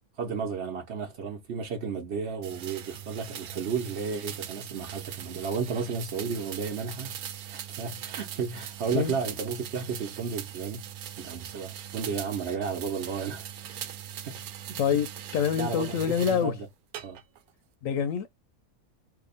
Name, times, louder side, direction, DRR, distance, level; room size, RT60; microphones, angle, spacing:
voice 1, 0.2-7.1 7.5-10.8 11.2-13.5 14.3-14.4 14.7-14.8 15.5-16.7 17.0-17.2, right 5 dB, 55° right, 1.0 m, -33 dB
sound 1, 2.4-16.5 16.9-17.5, right 10 dB, 85° right, 1.1 m, -40 dB
voice 2, 14.8-16.5 17.8-18.3, left 8 dB, 75° left, 0.9 m, -26 dB
2.9 x 2.2 x 4.0 m
omnidirectional pair, 1.5 m